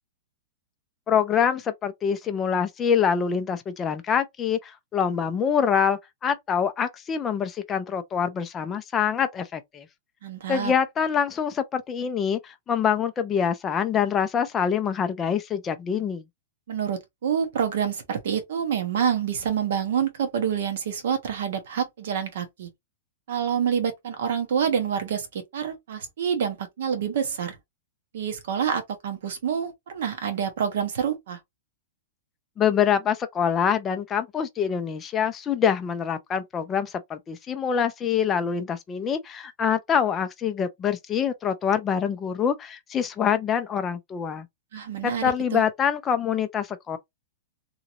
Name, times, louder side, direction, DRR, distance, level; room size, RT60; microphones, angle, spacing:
voice 1, 1.1-9.9 10.5-16.2 32.6-44.5 45.0-47.0, left 7 dB, 15° left, 0.3 m, -25 dB
voice 2, 10.2-10.7 16.7-22.7 23.3-27.6 28.1-31.4 44.7-45.6, right 8 dB, 55° right, 0.9 m, -27 dB
2.9 x 2.5 x 2.7 m
supercardioid pair, 180°, 0 cm